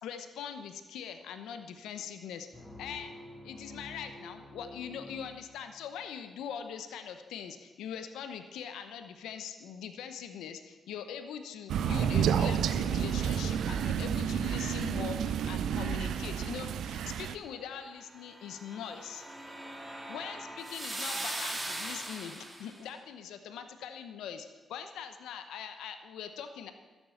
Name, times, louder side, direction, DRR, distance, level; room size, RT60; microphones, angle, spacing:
voice 1, 0.0-2.5 2.8-3.2 3.4-19.2 20.1-26.7, left 8 dB, 85° left, 8 dB, 0.9 m, -42 dB
sound 1, 2.5-6.1, left 1 dB, 10° left, 3.9 m, -49 dB
Crow, 11.7-17.4, right 8 dB, 80° right, 0.5 m, -30 dB
sound 2, 18.1-22.8, right 1 dB, 20° right, 3.1 m, -40 dB
12.5 x 7.2 x 8.4 m, 1.3 s
supercardioid pair, 55°, 0 cm